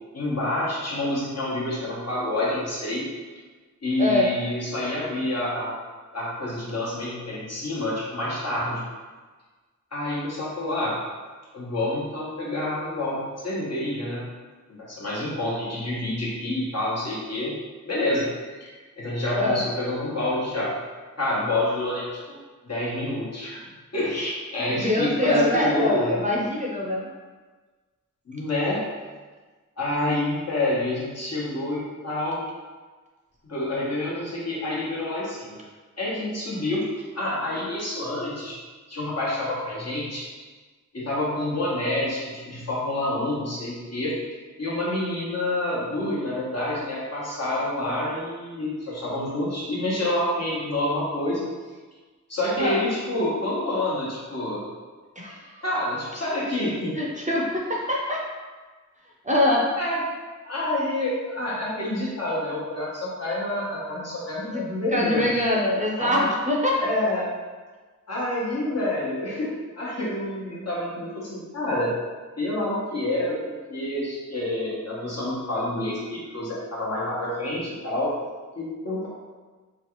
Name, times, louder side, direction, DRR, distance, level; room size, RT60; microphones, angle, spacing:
voice 1, 0.1-3.0 3.8-5.7 6.1-8.8 9.9-11.0 11.5-14.3 14.7-17.5 17.9-18.2 18.6-18.7 19.0-20.7 21.2-22.1 22.6-23.6 23.9-26.1 28.3-28.8 29.8-32.4 33.4-35.6 36.0-38.5 38.9-40.2 40.9-44.1 44.6-51.4 52.3-54.6 55.6-57.0 59.8-60.0 60.4-65.3 66.0-66.3 66.8-67.3 68.1-71.9 72.4-73.4 73.7-78.1 78.5-79.1, left 1 dB, 55° left, -7 dB, 1.1 m, -28 dB
voice 2, 4.0-4.3 19.3-19.6 24.6-27.1 52.6-52.8 55.2-55.6 56.9-58.2 59.2-59.7 64.4-64.6 64.9-66.9, left 1 dB, 25° right, -3 dB, 0.6 m, -24 dB
3.1 x 2.4 x 3.0 m, 1.4 s
cardioid pair, 50°, 31 cm